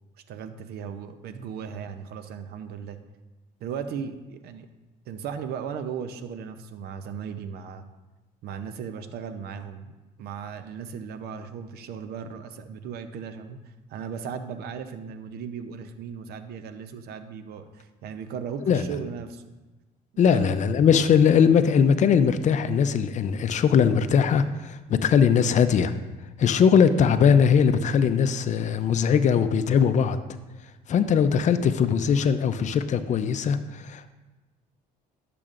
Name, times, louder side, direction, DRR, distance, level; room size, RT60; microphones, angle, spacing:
voice 1, 0.3-3.0 3.6-4.7 5.1-7.9 8.4-13.6 13.9-19.4 20.2-20.5, right 7 dB, 70° right, 9 dB, 0.6 m, -36 dB
voice 2, 20.2-25.9 26.4-30.2 30.9-34.1, left 7 dB, 45° left, 11 dB, 0.5 m, -20 dB
10.5 x 6.7 x 2.5 m, 1.1 s
cardioid pair, 110°, 17 cm